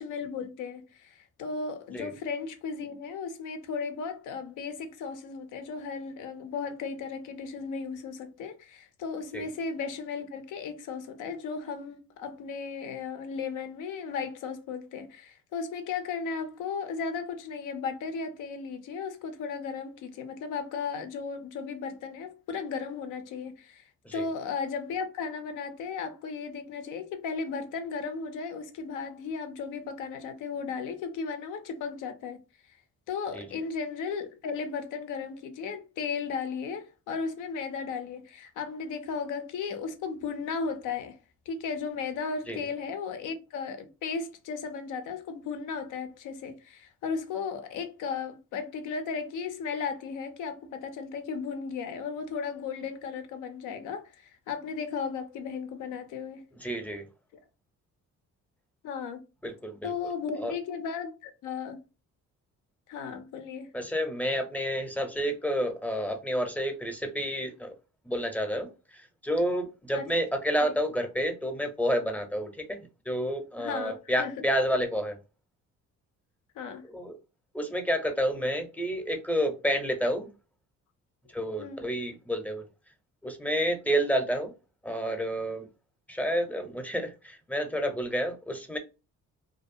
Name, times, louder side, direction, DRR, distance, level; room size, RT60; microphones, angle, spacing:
voice 1, 0.0-23.8 24.1-32.4 33.1-41.2 41.5-54.0 54.5-56.4 58.8-59.2 59.8-61.8 62.9-63.7 69.9-70.1 70.6-70.7 73.6-74.5 76.6-76.8 81.6-81.9, left 5 dB, 85° left, 0.6 m, -35 dB
voice 2, 56.5-57.0 59.4-59.9 60.4-60.5 63.7-67.7 68.0-75.2 76.9-77.2 77.5-80.3 81.3-82.6 83.2-84.5 84.8-85.7 86.1-88.8, equal, 5° left, 0.6 m, -30 dB
2.5 x 2.2 x 2.6 m
cardioid pair, 90°, 30 cm